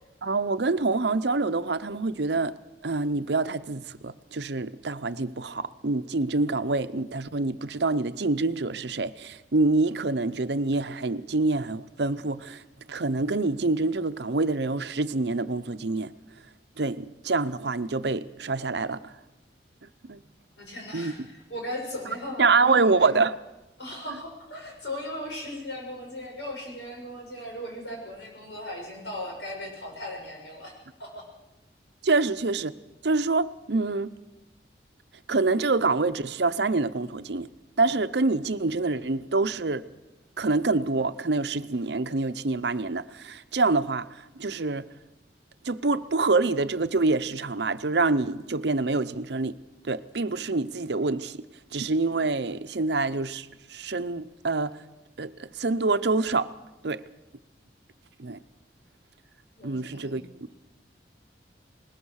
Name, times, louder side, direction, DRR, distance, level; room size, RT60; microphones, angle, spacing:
voice 1, 0.2-2.5 2.8-12.6 12.9-16.1 16.8-19.1 20.0-20.2 20.9-21.1 22.4-23.4 32.0-32.7 33.0-34.1 35.3-37.5 37.8-39.9 40.4-44.9 45.6-49.6 49.8-51.4 51.7-54.8 55.2-56.5 56.8-57.0 58.2-58.4 59.6-60.2, right 3 dB, 75° right, 0.8 m, -26 dB
voice 2, 20.6-23.1 23.8-30.7 31.0-31.3 59.6-60.1, left 1 dB, 80° left, 6.6 m, -37 dB
20.5 x 20.0 x 6.5 m
head